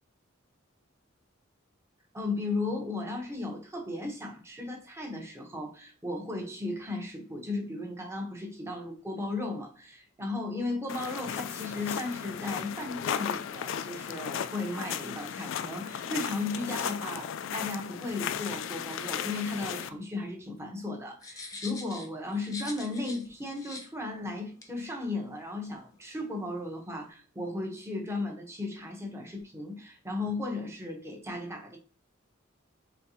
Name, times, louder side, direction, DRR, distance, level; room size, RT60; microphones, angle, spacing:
voice 1, 2.1-31.8, left 2 dB, 15° right, 0.8 m, -35 dB
sound 1, 10.9-19.9, left 8 dB, 70° left, 0.3 m, -35 dB
sound 2, 21.2-23.2 23.5-23.9 24.6-24.7, left 3 dB, 15° left, 0.6 m, -43 dB
4.2 x 3.1 x 2.7 m
head